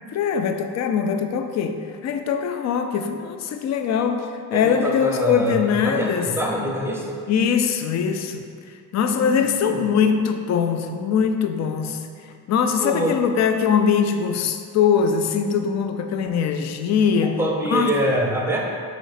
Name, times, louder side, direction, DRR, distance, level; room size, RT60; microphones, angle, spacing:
voice 1, 0.1-6.3 7.3-8.5 8.9-12.0 12.5-17.4 17.7-17.9, left 7 dB, 40° left, 6 dB, 0.4 m, -22 dB
voice 2, 4.5-7.2 9.2-9.8 12.8-13.2 17.2-18.6, right 1 dB, 5° right, -1 dB, 0.7 m, -25 dB
4.0 x 3.1 x 4.0 m, 2.2 s
supercardioid pair, 80°, 43 cm